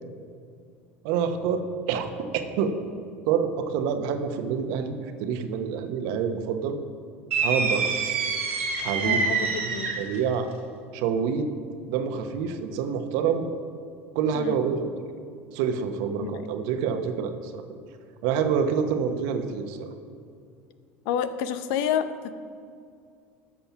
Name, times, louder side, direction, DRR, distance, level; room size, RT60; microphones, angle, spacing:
voice 1, 1.0-1.6 1.9-2.1 2.6-2.7 3.3-6.8 7.4-7.9 8.8-9.3 9.6-10.5 10.9-11.5 11.9-13.5 14.1-14.9 15.5-17.8 18.2-19.9, right 7 dB, 60° right, 7 dB, 1.2 m, -27 dB
sound 1, 7.3-10.2, right 5 dB, 85° right, 2.1 m, -26 dB
voice 2, 9.0-9.9 14.3-14.6 16.2-16.5 21.0-22.3, left 8 dB, 60° left, 11 dB, 0.8 m, -29 dB
13.5 x 6.7 x 5.9 m, 2.3 s
hypercardioid pair, 75°, 7 cm